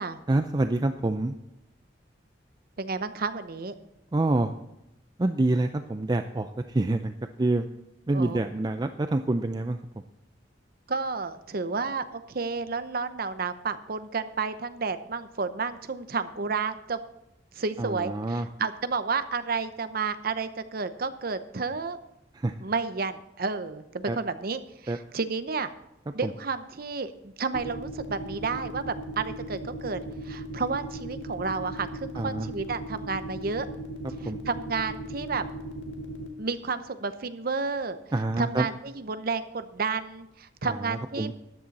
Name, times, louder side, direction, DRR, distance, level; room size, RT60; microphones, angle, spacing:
voice 1, 0.3-1.3 4.1-4.5 5.2-7.7 8.1-9.8 17.8-18.5 22.3-22.5 24.1-24.2 24.9-25.0 26.2-26.3 32.2-32.5 34.2-34.4 38.1-38.7 40.6-41.3, right 2 dB, 25° right, 8 dB, 0.4 m, -27 dB
voice 2, 2.8-3.7 8.1-8.4 10.9-17.0 17.5-22.0 22.6-25.7 26.1-33.7 34.2-35.4 36.4-38.0 38.4-41.3, right 4 dB, 55° right, 11 dB, 0.8 m, -31 dB
sound 1, 27.5-36.3, right 2 dB, 80° left, 1.7 m, -37 dB
13.5 x 10.0 x 4.1 m, 0.87 s
head